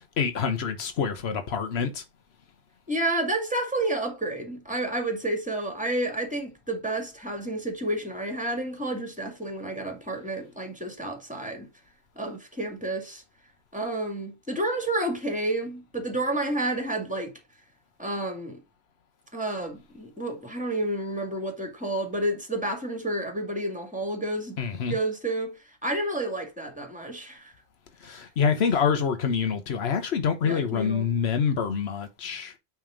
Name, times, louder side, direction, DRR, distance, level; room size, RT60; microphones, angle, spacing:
voice 1, 0.2-2.0 24.6-24.9 28.0-32.5, left 6 dB, 90° left, 1.1 m, -26 dB
voice 2, 2.9-11.7 12.2-13.2 13.7-17.3 18.0-18.6 19.3-24.6 24.9-25.5 25.8-27.5 28.0-28.2 30.4-31.1, right 1 dB, 5° right, 2.0 m, -30 dB
9.0 x 3.5 x 5.0 m
omnidirectional pair, 1.0 m